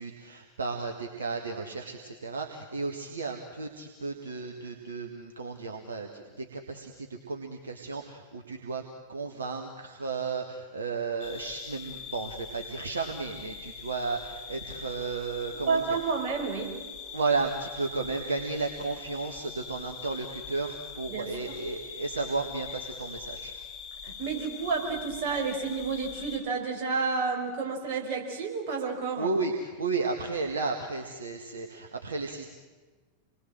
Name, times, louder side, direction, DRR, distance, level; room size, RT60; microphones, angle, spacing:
voice 1, 0.0-8.8 9.1-16.0 17.1-23.5 29.2-32.5, right 4 dB, 70° right, 3 dB, 1.9 m, -33 dB
sound 1, 11.2-26.4, left 6 dB, 40° left, 7.7 m, -43 dB
voice 2, 15.7-16.8 21.1-21.6 24.0-29.3, right 4 dB, 45° right, 0 dB, 5.6 m, -30 dB
28.0 x 21.0 x 7.8 m, 1.3 s
figure-of-eight pair, 90°, 0 cm